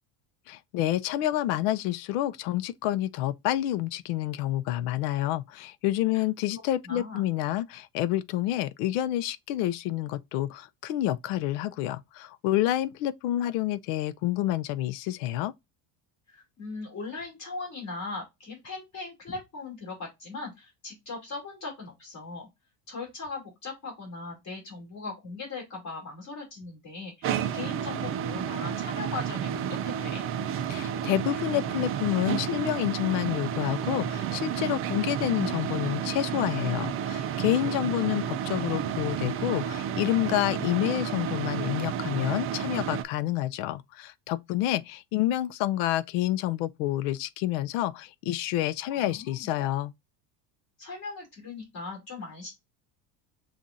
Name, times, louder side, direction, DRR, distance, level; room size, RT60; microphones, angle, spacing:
voice 1, 0.5-15.5 30.7-49.9, left 13 dB, 80° left, 0.6 m, -28 dB
voice 2, 6.8-7.2 16.3-22.5 22.9-30.2 48.9-49.5 50.8-52.5, left 3 dB, 40° left, 2.6 m, -39 dB
sound 1, 27.2-43.0, right 8 dB, 30° right, 0.4 m, -31 dB
7.0 x 2.5 x 2.5 m
cardioid pair, 155°, 44 cm